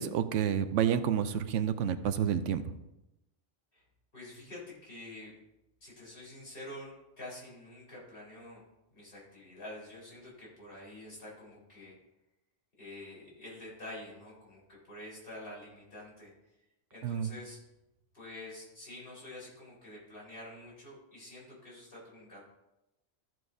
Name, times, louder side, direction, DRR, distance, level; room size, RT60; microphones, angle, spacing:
voice 1, 0.0-2.6 17.0-17.3, right 8 dB, 85° right, 11 dB, 1.0 m, -29 dB
voice 2, 4.1-5.3 5.8-8.6 8.9-11.9 12.8-14.6 14.9-16.3 16.9-17.6 18.1-22.4, left 1 dB, 50° left, -6 dB, 4.3 m, -47 dB
14.0 x 7.7 x 2.7 m, 0.93 s
omnidirectional pair, 1.2 m